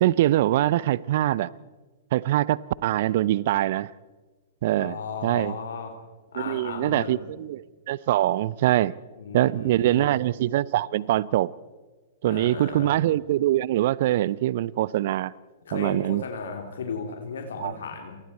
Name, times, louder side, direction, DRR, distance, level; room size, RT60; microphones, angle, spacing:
voice 1, 0.0-1.5 2.1-3.9 4.6-5.0 5.2-5.5 6.4-8.9 9.3-11.5 12.2-15.3 15.7-16.2 17.6-17.7, right 14 dB, 55° right, 0.7 m, -23 dB
voice 2, 4.8-5.9 6.3-7.4 9.2-10.1 12.2-13.0 15.6-18.2, left 5 dB, 65° left, 3.2 m, -35 dB
29.0 x 27.0 x 4.4 m
figure-of-eight pair, 110°, 0 cm